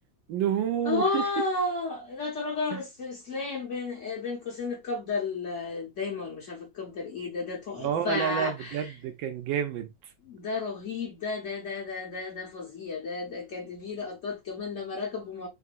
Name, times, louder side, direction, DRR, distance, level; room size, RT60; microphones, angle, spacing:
voice 1, 0.3-1.2 2.7-2.8 7.8-9.9, right 9 dB, 80° right, 1.4 m, -29 dB
voice 2, 0.8-8.9 10.2-15.5, left 3 dB, 50° left, 1.0 m, -33 dB
3.7 x 2.6 x 2.4 m
omnidirectional pair, 2.1 m